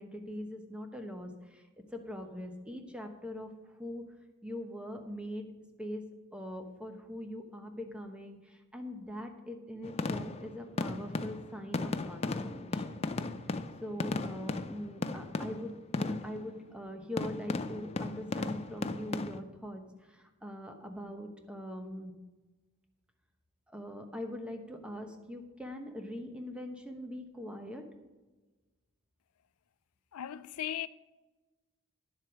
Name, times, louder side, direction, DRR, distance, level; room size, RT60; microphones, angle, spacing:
voice 1, 0.0-4.0 4.4-5.5 5.8-6.0 6.3-13.0 13.8-22.2 23.7-27.9, equal, 5° right, 1.0 m, -42 dB
sound 1, 9.8-16.5 17.2-19.4, left 3 dB, 30° left, 0.5 m, -36 dB
voice 2, 30.1-30.9, left 11 dB, 90° left, 0.4 m, -37 dB
10.5 x 7.4 x 5.0 m
head